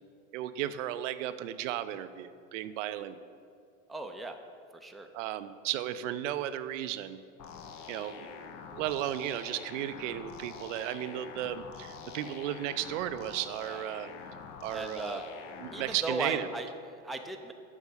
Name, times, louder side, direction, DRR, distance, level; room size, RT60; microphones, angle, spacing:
voice 1, 0.3-3.2 5.1-7.2 7.9-8.3 8.7-14.1 14.6-15.2 15.6-16.5, right 12 dB, 75° right, 12 dB, 0.5 m, -34 dB
voice 2, 3.9-4.4 4.7-5.1 13.6-13.8 14.7-15.2 15.7-17.5, right 2 dB, ahead, 4 dB, 0.5 m, -37 dB
sound 1, 7.4-16.0, left 6 dB, 50° left, 0.8 m, -46 dB
7.3 x 5.4 x 6.8 m, 2.3 s
hypercardioid pair, 90°, 38 cm